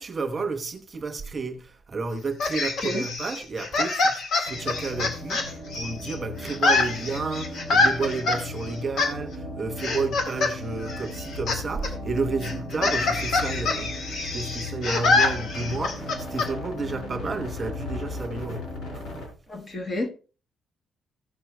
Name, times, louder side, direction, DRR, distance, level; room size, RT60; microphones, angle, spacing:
voice 1, 0.0-18.7 18.9-19.1 19.5-19.6, right 3 dB, 25° right, 1.0 m, -31 dB
sound 1, 2.4-6.2 6.4-8.4 9.0-9.1 9.8-10.5 10.8-11.6 11.8-11.9 12.4-16.5, left 3 dB, 65° left, 2.0 m, -25 dB
sound 2, 4.5-19.3, left 2 dB, 90° left, 5.1 m, -36 dB
voice 2, 19.5-20.1, left 2 dB, 30° left, 1.4 m, -30 dB
15.5 x 6.1 x 3.3 m
cardioid pair, 150°, 0 cm